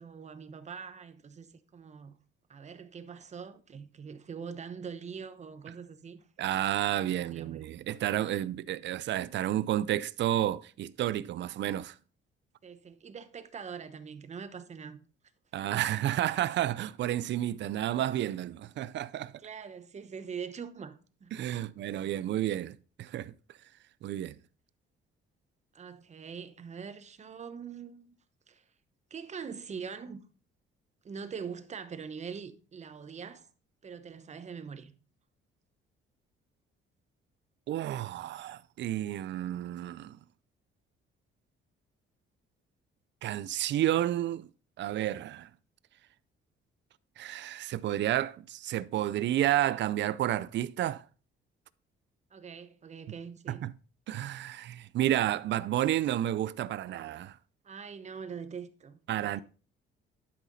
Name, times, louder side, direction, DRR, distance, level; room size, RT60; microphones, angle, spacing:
voice 1, 0.0-1.5 1.7-2.2 2.5-6.2 6.9-7.6 12.6-15.0 15.6-15.8 19.4-21.7 25.7-28.1 28.5-28.6 29.1-30.2 31.0-33.5 33.8-34.9 52.3-53.6 57.6-59.4, right 6 dB, 35° right, 0.9 m, -43 dB
voice 2, 6.4-12.0 15.5-19.3 21.3-23.3 24.0-24.4 37.7-40.2 43.2-44.5 44.8-45.5 47.2-51.0 53.5-53.7 54.1-57.4 59.1-59.4, right 12 dB, 60° right, 0.5 m, -31 dB
11.0 x 5.8 x 4.0 m
cardioid pair, 130°, 21 cm